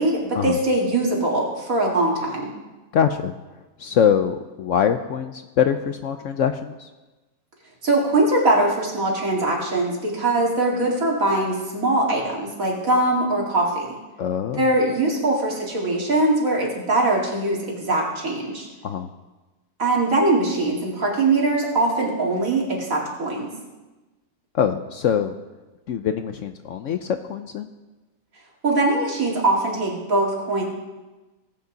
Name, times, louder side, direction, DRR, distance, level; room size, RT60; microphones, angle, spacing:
voice 1, 0.0-2.5 7.8-13.9 14.6-18.7 19.8-23.5 28.6-30.6, right 2 dB, 60° right, -3 dB, 2.8 m, -22 dB
voice 2, 2.9-3.3 3.8-6.9 14.2-14.6 18.8-19.1 24.5-25.3 25.9-27.7, left 8 dB, 65° left, 8 dB, 0.8 m, -23 dB
18.5 x 8.2 x 4.0 m, 1.1 s
omnidirectional pair, 1.6 m